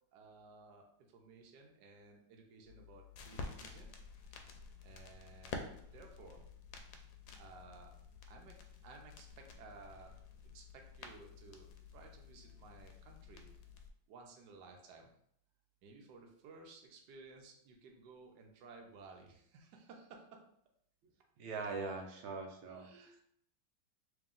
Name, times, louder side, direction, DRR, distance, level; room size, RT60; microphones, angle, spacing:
voice 1, 0.1-3.9 4.8-6.4 7.3-7.9 8.3-10.2 10.5-13.5 14.1-15.1 15.8-20.4 22.3-23.2, right 4 dB, 70° right, 1 dB, 1.2 m, -57 dB
sound 1, 2.7-13.9, left 4 dB, 80° left, 1.3 m, -51 dB
voice 2, 21.4-22.9, right 4 dB, 90° right, 3 dB, 1.5 m, -41 dB
3.3 x 3.0 x 3.6 m, 0.68 s
omnidirectional pair, 2.2 m